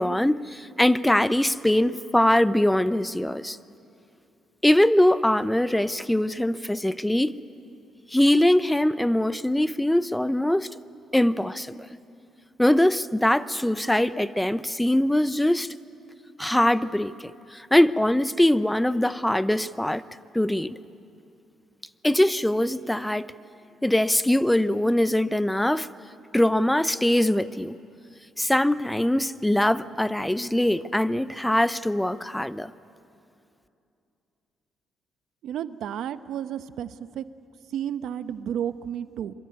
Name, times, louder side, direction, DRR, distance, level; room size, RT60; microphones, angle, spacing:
voice 1, 0.0-3.6 4.6-7.4 8.1-10.7 11.1-11.9 12.6-15.7 16.4-20.0 20.3-20.8 22.0-23.3 23.8-25.9 26.3-27.8 28.4-32.7, left 1 dB, 5° left, 0.6 m, -22 dB
voice 2, 35.4-37.2 37.7-39.3, right 9 dB, 75° right, 0.8 m, -32 dB
26.0 x 23.5 x 9.5 m
cardioid pair, 95°, 0 cm